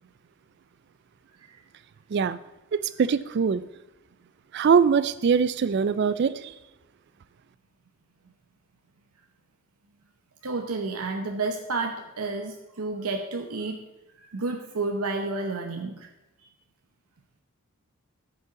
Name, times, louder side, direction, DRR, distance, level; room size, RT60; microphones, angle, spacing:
voice 1, 2.7-3.6 4.5-6.5, right 6 dB, 50° right, 16 dB, 0.3 m, -22 dB
voice 2, 10.4-13.8 14.2-16.1, right 3 dB, 90° right, 5 dB, 0.9 m, -31 dB
14.0 x 5.5 x 6.9 m, 0.97 s
head